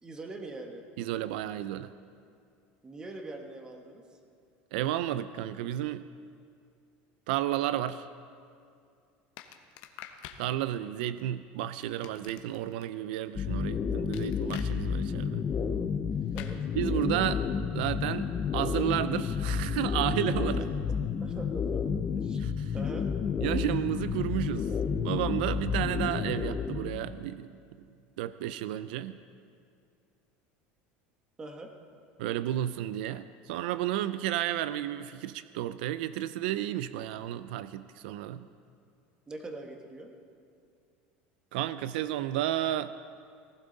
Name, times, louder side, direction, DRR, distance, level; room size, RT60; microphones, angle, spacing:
voice 1, 0.0-0.8 2.8-4.0 16.3-16.6 21.2-21.8 22.2-22.4 22.7-23.1 31.4-31.7 39.3-40.1, right 2 dB, 15° right, 4 dB, 1.3 m, -42 dB
voice 2, 1.0-1.9 4.7-6.0 7.3-8.1 10.4-15.4 16.7-17.4 17.7-20.6 22.4-22.7 23.4-27.6 28.2-29.2 32.2-38.5 41.5-42.9, right 13 dB, 80° right, 14 dB, 0.5 m, -32 dB
sound 1, 9.4-10.4 11.8-12.8 14.1-14.7 16.4-16.6, left 11 dB, 60° left, 1.0 m, -46 dB
sound 2, 13.4-27.1, left 6 dB, 25° left, 0.6 m, -31 dB
18.5 x 15.5 x 4.0 m, 2.4 s
cardioid pair, 160°, 5 cm